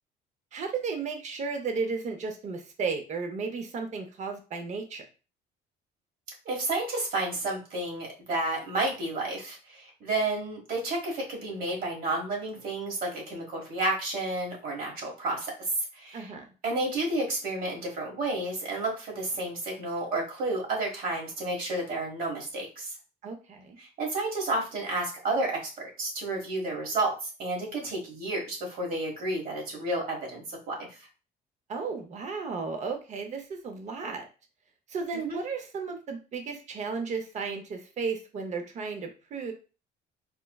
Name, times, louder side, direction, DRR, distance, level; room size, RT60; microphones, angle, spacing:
voice 1, 0.5-5.0 16.1-16.5 23.2-23.8 31.7-34.2 34.9-39.5, right 5 dB, 45° right, 5 dB, 0.7 m, -34 dB
voice 2, 6.4-15.5 15.9-16.3 16.6-22.9 23.8-30.9 35.2-35.4, right 2 dB, 60° right, -1 dB, 1.5 m, -31 dB
4.5 x 2.1 x 2.3 m, 0.33 s
cardioid pair, 110°, 17 cm